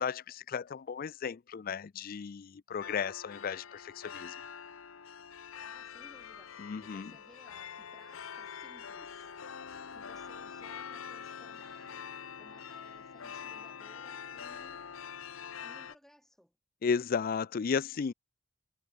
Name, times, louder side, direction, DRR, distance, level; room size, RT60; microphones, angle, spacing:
voice 1, 0.0-4.3 6.6-7.1 16.8-18.1, left 6 dB, 45° left, 0.4 m, -34 dB
sound 1, 2.8-16.0, left 7 dB, 80° left, 0.8 m, -45 dB
voice 2, 5.6-9.3 9.9-12.1 12.4-14.9 15.6-16.5, equal, ahead, 2.9 m, -60 dB
head